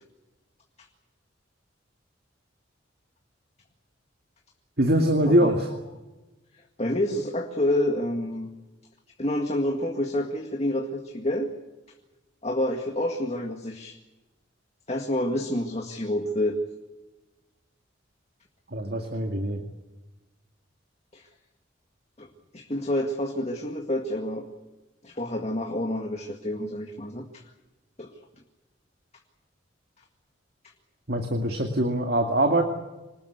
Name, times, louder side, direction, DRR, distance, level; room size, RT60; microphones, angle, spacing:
voice 1, 4.8-5.7 18.7-19.6 31.1-32.6, right 1 dB, 50° right, 4 dB, 2.2 m, -23 dB
voice 2, 6.8-8.5 9.2-11.5 12.4-14.0 14.9-16.6 21.1-21.3 22.2-22.3 22.5-24.5 25.0-27.4 28.0-28.1, left 1 dB, 35° left, 3 dB, 2.0 m, -28 dB
26.0 x 20.0 x 8.2 m, 1.1 s
head